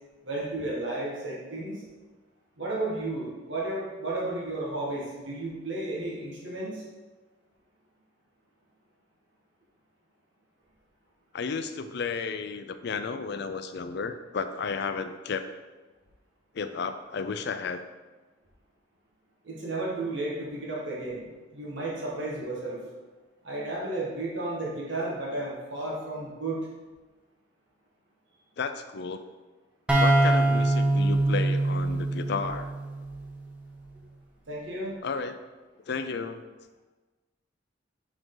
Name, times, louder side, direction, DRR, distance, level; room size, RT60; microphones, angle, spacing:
voice 1, 0.2-1.8 2.6-6.8 19.4-22.8 23.4-26.6 34.5-34.9, right 2 dB, 80° right, -4 dB, 1.7 m, -33 dB
voice 2, 11.3-15.5 16.5-17.8 28.6-29.2 30.0-32.7 35.0-35.4 35.9-36.5, left 5 dB, 60° left, 10 dB, 0.4 m, -33 dB
sound 1, 29.9-33.5, right 2 dB, 5° right, 0.8 m, -24 dB
6.2 x 5.0 x 3.8 m, 1.2 s
head